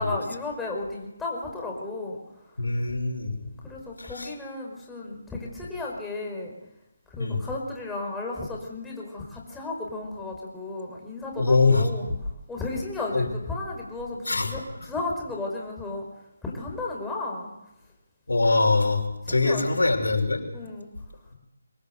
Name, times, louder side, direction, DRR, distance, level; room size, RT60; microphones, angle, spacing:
voice 1, 0.0-2.2 3.6-6.5 7.1-12.1 12.5-16.1 16.4-17.5 19.2-19.7 20.5-20.9, left 2 dB, 5° left, -2 dB, 5.2 m, -34 dB
voice 2, 2.6-3.4 4.0-4.3 7.2-7.4 11.4-11.9 13.1-13.3 14.3-14.6 18.3-20.4, left 3 dB, 90° left, 1 dB, 5.7 m, -23 dB
24.5 x 20.0 x 8.1 m, 0.93 s
figure-of-eight pair, 160°, 0 cm